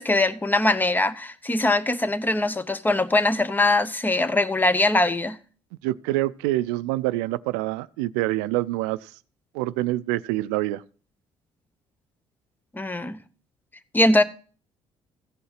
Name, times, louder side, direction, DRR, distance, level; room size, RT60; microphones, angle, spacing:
voice 1, 0.0-5.4 12.7-13.2 13.9-14.2, left 2 dB, 15° left, 0.9 m, -22 dB
voice 2, 5.8-9.1 9.5-10.8, right 17 dB, 90° right, 0.4 m, -26 dB
15.5 x 5.6 x 5.8 m
supercardioid pair, 65°, 12 cm